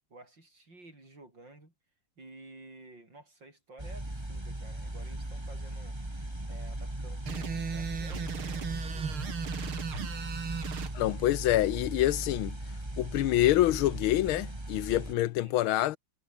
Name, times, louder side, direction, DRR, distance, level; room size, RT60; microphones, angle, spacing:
voice 1, 0.1-1.7 2.2-6.0 6.5-9.3 15.4-15.6, right 2 dB, 60° right, 8.7 m, -53 dB
sound 1, 3.8-15.1, right 1 dB, 10° right, 3.3 m, -38 dB
sound 2, 7.3-10.9, right 6 dB, 85° right, 3.3 m, -36 dB
voice 2, 10.9-12.6 13.0-16.0, left 14 dB, 85° left, 1.6 m, -26 dB
omnidirectional pair, 2.3 m